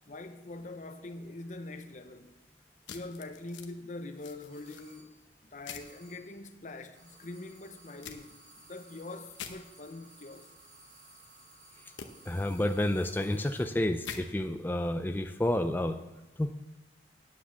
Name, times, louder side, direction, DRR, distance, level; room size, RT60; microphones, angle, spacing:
voice 1, 0.1-2.3 2.9-5.2 5.5-8.4 8.7-10.5, left 2 dB, 40° left, 0.8 m, -43 dB
sound 1, 2.9-3.7 4.2-4.8 5.7-5.9 8.0-8.2 9.3-9.5 12.0-12.1 14.0-14.2, left 7 dB, 90° left, 1.0 m, -43 dB
sound 2, 4.5-5.2 5.6-6.4 6.9-13.8, right 2 dB, 90° right, 4.4 m, -57 dB
voice 2, 12.3-16.0 16.4-16.5, left 1 dB, 10° left, 0.4 m, -30 dB
9.5 x 7.0 x 7.4 m
head